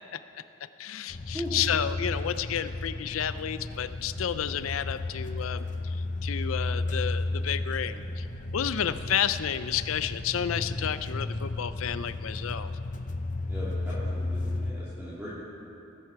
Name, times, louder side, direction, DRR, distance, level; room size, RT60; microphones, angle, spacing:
voice 1, 0.8-8.3 8.5-12.7, left 9 dB, 90° left, 13 dB, 0.5 m, -31 dB
sound 1, 1.1-14.7, left 2 dB, 40° left, 0.6 m, -33 dB
voice 2, 13.5-15.4, equal, 10° right, -11 dB, 2.6 m, -39 dB
19.5 x 11.0 x 4.7 m, 2.8 s
head